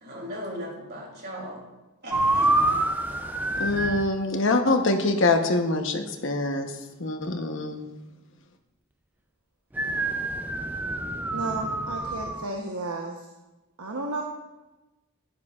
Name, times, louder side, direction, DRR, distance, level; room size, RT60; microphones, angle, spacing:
voice 1, 0.0-1.6 2.0-2.5, equal, 45° right, -2 dB, 2.9 m, -37 dB
sound 1, 2.1-4.1 9.7-12.5, right 2 dB, 10° right, 0.4 m, -26 dB
voice 2, 3.6-6.7 7.0-7.8, left 2 dB, 55° left, 5 dB, 0.9 m, -24 dB
voice 3, 11.3-13.2 13.8-14.2, right 2 dB, 80° right, 0 dB, 0.9 m, -33 dB
11.5 x 10.5 x 2.4 m, 1.1 s
head